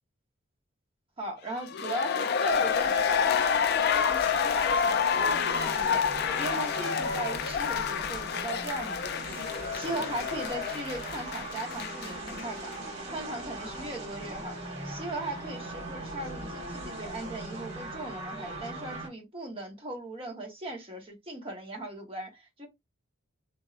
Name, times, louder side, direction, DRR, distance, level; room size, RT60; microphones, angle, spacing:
voice 1, 1.2-6.0 6.4-9.4 9.7-12.7 13.1-14.6 14.8-22.7, right 2 dB, 25° right, 1.0 m, -38 dB
sound 1, 1.6-12.4 12.7-12.8, left 7 dB, 50° left, 0.3 m, -28 dB
sound 2, 2.5-19.1, right 2 dB, 65° right, 1.4 m, -40 dB
3.0 x 2.6 x 2.4 m
head